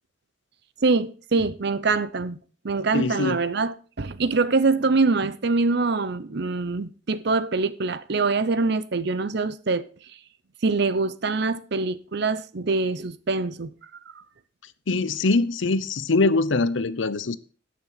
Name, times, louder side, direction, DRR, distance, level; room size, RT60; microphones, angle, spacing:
voice 1, 0.8-2.4 2.6-9.9 10.6-13.7, right 3 dB, 60° right, 0.7 m, -24 dB
voice 2, 2.9-3.4 14.9-17.4, left 3 dB, 75° left, 0.7 m, -23 dB
18.0 x 6.3 x 4.1 m
head